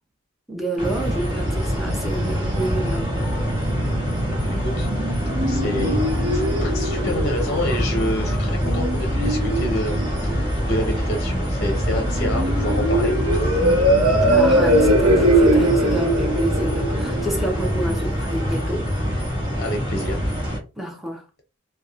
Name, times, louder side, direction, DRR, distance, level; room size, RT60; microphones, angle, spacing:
voice 1, 0.5-3.3 14.3-18.9 20.8-21.3, right 1 dB, ahead, 0.5 m, -28 dB
sound 1, 0.8-20.6, equal, 20° right, 1.2 m, -24 dB
voice 2, 4.3-5.2 5.5-13.6 19.6-20.2, equal, 50° left, 0.6 m, -29 dB
sound 2, 4.5-18.4, right 1 dB, 80° right, 0.7 m, -22 dB
2.8 x 2.1 x 2.4 m
head